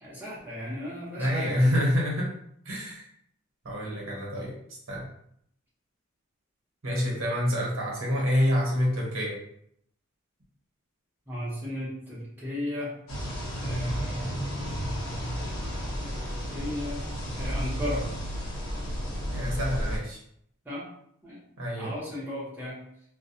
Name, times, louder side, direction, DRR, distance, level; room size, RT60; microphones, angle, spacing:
voice 1, 0.0-1.7 11.3-13.0 13.6-14.4 16.0-17.0 17.3-18.1 20.6-20.9 21.2-21.4 21.8-22.9, left 1 dB, 10° right, -8 dB, 0.8 m, -35 dB
voice 2, 1.2-2.3 2.6-3.1 3.6-4.6 4.9-5.0 6.8-9.4 19.3-20.2 21.6-21.9, equal, 75° right, -2 dB, 0.9 m, -27 dB
sound 1, 13.1-20.0, equal, 80° left, 0.9 m, -32 dB
2.2 x 2.2 x 2.7 m, 0.70 s
head